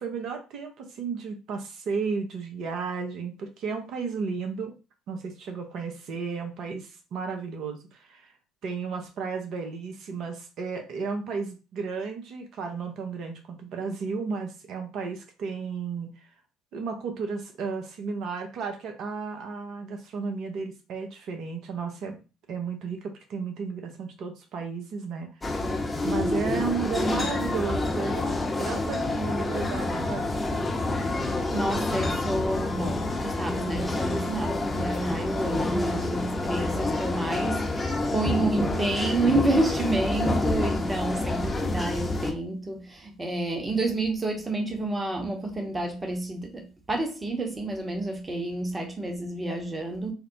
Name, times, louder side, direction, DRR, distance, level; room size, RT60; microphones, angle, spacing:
voice 1, 0.0-4.8 5.1-8.3 8.6-16.3 16.7-22.2 22.5-25.7 26.0-30.3, right 5 dB, 60° right, 0.7 m, -33 dB
sound 1, 25.4-42.3, left 2 dB, 25° left, 0.7 m, -28 dB
voice 2, 31.5-50.1, right 2 dB, 25° right, 1.0 m, -29 dB
4.2 x 2.1 x 2.6 m
hypercardioid pair, 55°, 0 cm